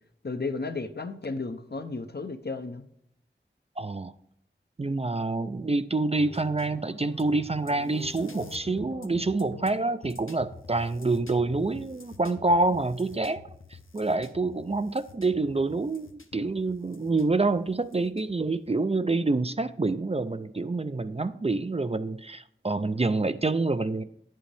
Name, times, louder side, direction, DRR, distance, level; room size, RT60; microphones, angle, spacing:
voice 1, 0.2-2.8, left 3 dB, 55° left, 9 dB, 0.6 m, -33 dB
voice 2, 3.8-4.1 4.8-13.4 13.7-24.0, right 3 dB, 30° right, 11 dB, 0.4 m, -27 dB
sound 1, 6.2-18.7, left 3 dB, 90° left, 0.7 m, -47 dB
10.5 x 7.5 x 3.3 m, 0.73 s
wide cardioid pair, 40°, 20 cm